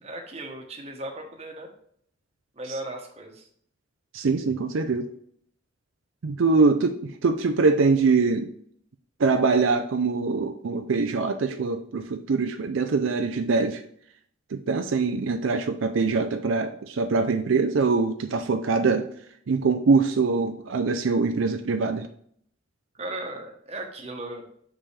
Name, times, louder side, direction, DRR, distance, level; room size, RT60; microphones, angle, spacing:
voice 1, 0.0-1.7 2.6-3.5 22.9-24.4, right 2 dB, 30° right, 2 dB, 1.1 m, -36 dB
voice 2, 4.1-5.1 6.2-8.5 9.2-13.8 14.5-19.1 19.5-22.1, right 4 dB, 80° right, 7 dB, 0.5 m, -23 dB
7.1 x 5.4 x 3.3 m, 0.65 s
head